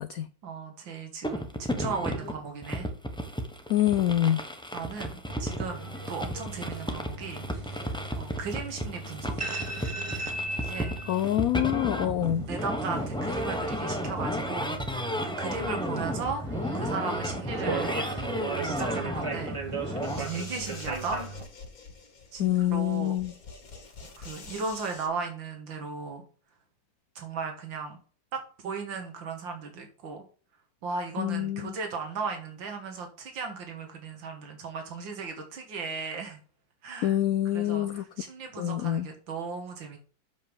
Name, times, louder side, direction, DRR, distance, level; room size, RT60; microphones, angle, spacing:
voice 1, 0.4-2.9 4.7-7.4 7.8-9.6 10.6-11.3 12.0-16.4 16.7-17.9 18.6-19.6 19.8-21.2 22.3-23.2 24.2-26.2 27.2-28.0 28.3-30.2 30.8-36.4 36.8-37.2 37.5-40.0, right 4 dB, 85° right, 4 dB, 2.2 m, -36 dB
sound 1, 1.2-20.2, equal, 5° left, 0.7 m, -33 dB
voice 2, 3.7-4.4 11.1-12.5 22.4-23.3 31.2-31.6 37.0-38.0 38.6-39.1, left 12 dB, 85° left, 12 dB, 0.7 m, -26 dB
sound 2, 5.3-21.4, right 2 dB, 20° right, 0.9 m, -38 dB
sound 3, 20.0-25.1, left 4 dB, 50° left, 2.2 m, -46 dB
7.6 x 5.4 x 5.1 m, 0.40 s
omnidirectional pair, 2.0 m